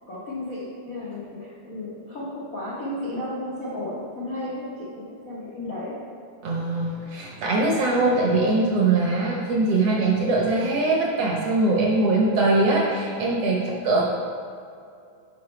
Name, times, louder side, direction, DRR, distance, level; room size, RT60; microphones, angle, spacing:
voice 1, 0.1-5.9 13.8-14.1, left 1 dB, 80° left, -8 dB, 0.7 m, -33 dB
voice 2, 6.4-14.1, right 2 dB, 65° right, -2 dB, 1.6 m, -22 dB
9.9 x 5.4 x 3.3 m, 2.4 s
omnidirectional pair, 3.7 m